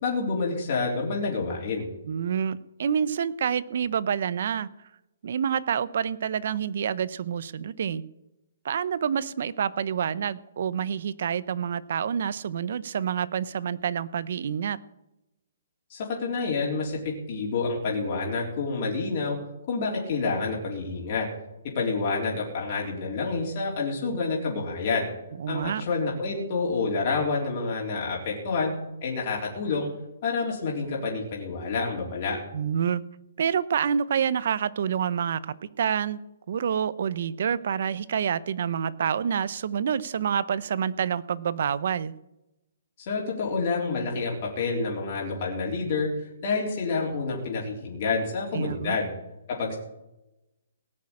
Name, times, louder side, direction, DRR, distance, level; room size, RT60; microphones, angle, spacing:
voice 1, 0.0-1.9 15.9-19.4 19.7-21.3 21.8-25.1 25.5-28.7 29.0-29.9 30.2-32.4 43.0-46.1 46.4-49.1 49.5-49.8, left 4 dB, 35° left, -2 dB, 3.6 m, -28 dB
voice 2, 2.1-4.7 5.2-8.0 8.6-14.8 25.4-25.8 32.5-33.0 33.4-36.2 36.5-42.1 48.5-49.0, right 8 dB, 55° right, 18 dB, 0.7 m, -27 dB
18.0 x 6.5 x 8.5 m, 0.91 s
hypercardioid pair, 165°, 0 cm